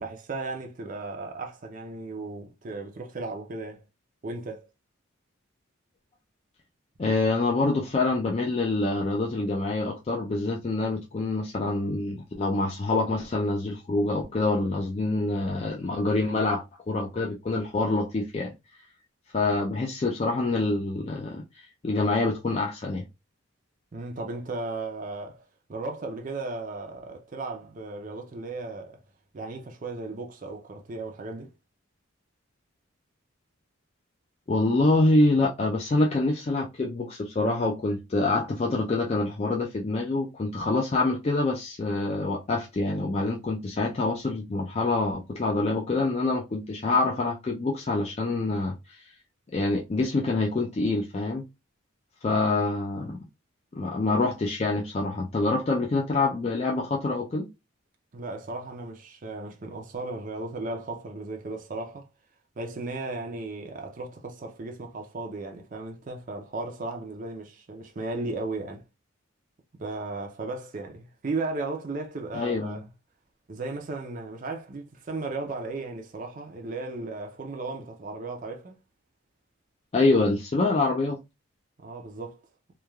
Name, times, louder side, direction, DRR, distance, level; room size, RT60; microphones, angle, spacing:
voice 1, 0.0-3.8 4.2-4.6 23.9-25.4 25.7-29.0 29.3-31.5 58.1-62.1 62.6-68.8 69.8-72.9 73.5-78.8 81.8-82.4, right 3 dB, 40° right, 0.4 m, -35 dB
voice 2, 7.0-18.5 19.3-23.0 34.5-49.1 49.5-51.4 52.2-53.2 53.8-57.5 72.3-72.8 79.9-81.2, left 2 dB, 30° left, 0.3 m, -26 dB
3.1 x 2.2 x 2.2 m
head